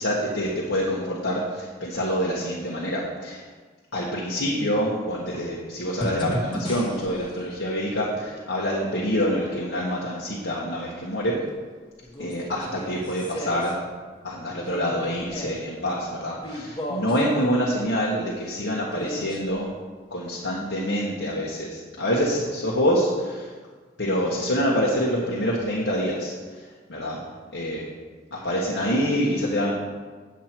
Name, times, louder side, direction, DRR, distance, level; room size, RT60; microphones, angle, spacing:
voice 1, 0.0-3.4 3.9-11.4 12.2-13.8 14.2-19.7 20.1-23.5 24.0-27.2 27.5-27.8 28.3-29.7, equal, 75° left, -5 dB, 1.5 m, -26 dB
sound 1, 6.0-7.3 9.1-9.2 12.0-13.7 14.6-15.6 16.4-17.2 18.8-19.6 20.1-20.2, equal, 25° left, 1.2 m, -34 dB
9.3 x 7.5 x 4.5 m, 1.5 s
head